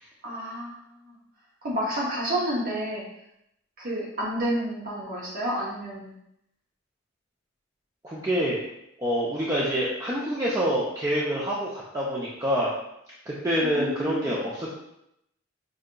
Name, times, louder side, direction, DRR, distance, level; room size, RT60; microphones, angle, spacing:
voice 1, 0.2-1.1 1.6-3.0 3.8-6.2 13.6-14.4, right 1 dB, 45° right, -5 dB, 0.8 m, -30 dB
voice 2, 8.0-8.6 9.0-12.7 13.3-14.7, equal, 15° right, -6 dB, 0.5 m, -26 dB
4.9 x 2.7 x 2.2 m, 0.79 s
head